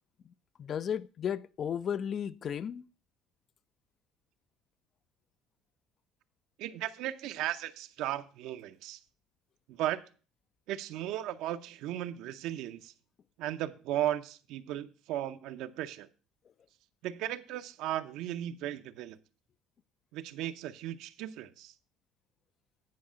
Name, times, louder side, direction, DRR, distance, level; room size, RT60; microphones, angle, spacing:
voice 1, 0.6-2.8, left 8 dB, 40° left, 0.4 m, -34 dB
voice 2, 6.6-9.0 9.7-10.0 10.7-12.9 13.4-16.1 17.0-19.2 20.1-21.7, right 12 dB, 70° right, 0.6 m, -36 dB
9.6 x 4.8 x 6.2 m
cardioid pair, 110°, 0 cm